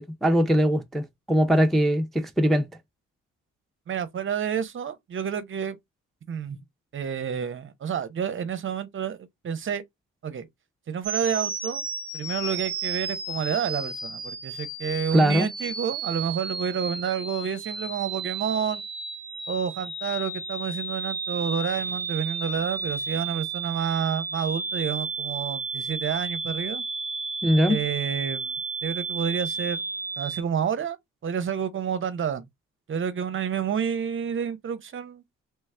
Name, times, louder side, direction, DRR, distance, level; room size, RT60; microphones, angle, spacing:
voice 1, 0.0-2.7 15.1-15.5 27.4-27.8, equal, ahead, 0.4 m, -21 dB
voice 2, 3.9-5.8 6.3-6.6 6.9-9.8 10.2-10.5 10.9-11.8 12.1-18.8 19.5-26.8 27.7-29.8 30.2-31.0 31.2-32.4 32.9-35.2, right 7 dB, 40° right, 0.6 m, -29 dB
sound 1, 11.0-30.4, right 4 dB, 15° right, 1.2 m, -33 dB
3.2 x 2.2 x 3.2 m
cardioid pair, 90°, 30 cm